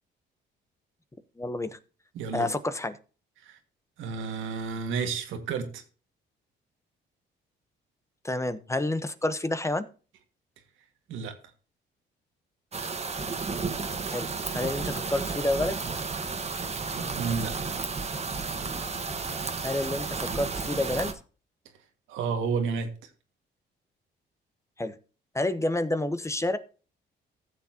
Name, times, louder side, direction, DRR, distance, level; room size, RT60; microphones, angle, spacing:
voice 1, 1.4-1.8 2.3-3.0 8.2-9.8 14.1-15.8 19.6-21.1 24.8-24.9 25.3-26.6, left 2 dB, 15° left, 11 dB, 0.9 m, -29 dB
voice 2, 2.2-2.6 3.4-3.6 4.0-5.8 11.1-11.4 17.0-17.6 22.1-22.9, right 5 dB, 85° right, 5 dB, 1.8 m, -31 dB
Rainstorm and Thunder, 12.7-21.1, right 4 dB, 35° right, 1.3 m, -32 dB
15.5 x 7.2 x 2.8 m, 0.36 s
cardioid pair, 90°, 20 cm